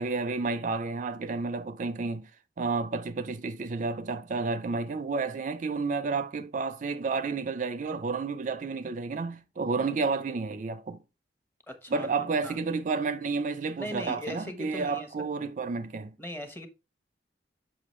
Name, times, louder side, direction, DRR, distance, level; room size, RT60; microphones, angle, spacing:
voice 1, 0.0-2.3 2.6-11.0 11.9-16.1, right 4 dB, 45° right, 0.4 m, -31 dB
voice 2, 11.7-12.1 12.4-12.6 13.8-15.1 16.2-16.7, equal, 10° left, 1.0 m, -39 dB
6.8 x 5.6 x 3.1 m
head